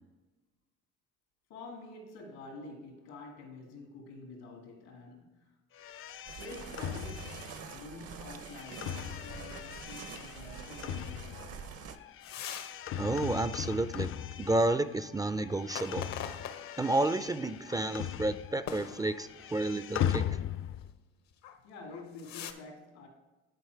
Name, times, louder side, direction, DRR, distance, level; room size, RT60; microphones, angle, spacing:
voice 1, 1.5-5.6 6.0-11.6 21.6-23.1, left 2 dB, 85° left, 2.2 m, -48 dB
sound 1, 5.8-15.1 15.3-18.8 19.0-20.9, left 10 dB, 45° left, 0.5 m, -39 dB
sound 2, 6.3-12.0, right 7 dB, 55° right, 0.8 m, -46 dB
sound 3, 12.2-12.8 13.2-13.3 15.6-17.0 17.7-17.9 18.7-19.5 21.3-21.6 21.9-22.5, left 8 dB, 70° left, 0.8 m, -43 dB
voice 2, 13.0-14.1 14.4-16.2 16.8-20.2, right 2 dB, 15° right, 0.4 m, -31 dB
10.5 x 4.3 x 4.6 m
supercardioid pair, 65°, 29 cm